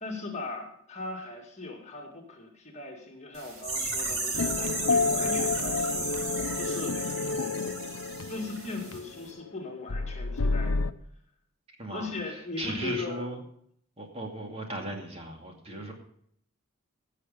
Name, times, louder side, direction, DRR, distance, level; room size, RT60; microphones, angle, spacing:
voice 1, 0.0-6.1 6.5-7.3 8.3-10.8 11.9-13.3 15.7-15.9, left 3 dB, 30° left, 2 dB, 2.4 m, -38 dB
sound 1, 3.3-9.0 9.2-9.3, right 3 dB, 80° right, 5.1 m, -34 dB
sound 2, 4.3-9.5 9.9-10.9, left 4 dB, 80° left, 0.7 m, -30 dB
voice 2, 11.8-13.4 14.0-15.9, right 1 dB, 30° right, 2 dB, 2.4 m, -37 dB
17.0 x 6.6 x 6.8 m, 0.68 s
head